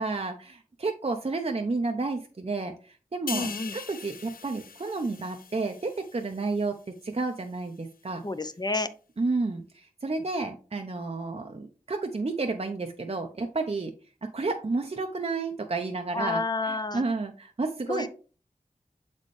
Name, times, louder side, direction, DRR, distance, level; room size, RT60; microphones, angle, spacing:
voice 1, 0.0-6.8 7.0-8.2 9.2-13.9 14.2-18.1, right 3 dB, 45° right, 4 dB, 0.7 m, -31 dB
sound 1, 3.3-6.8 7.2-7.4, left 6 dB, 80° left, 0.4 m, -41 dB
voice 2, 3.3-3.7 8.2-8.9 16.1-17.0 17.9-18.1, left 3 dB, 30° left, 12 dB, 0.6 m, -30 dB
7.1 x 4.2 x 3.2 m, 0.37 s
wide cardioid pair, 50°, 15 cm